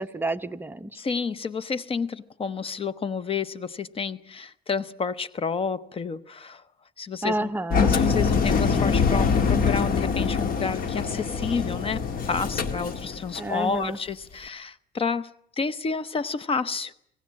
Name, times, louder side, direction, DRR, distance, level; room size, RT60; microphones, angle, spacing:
voice 1, 0.0-0.9 7.2-8.0 13.4-14.0, right 2 dB, 10° right, 0.8 m, -29 dB
voice 2, 0.9-6.6 7.0-7.5 7.9-16.9, left 5 dB, 35° left, 0.8 m, -30 dB
Engine, 7.7-13.5, left 5 dB, 55° left, 2.1 m, -24 dB
27.0 x 18.0 x 7.4 m
cardioid pair, 110°, 17 cm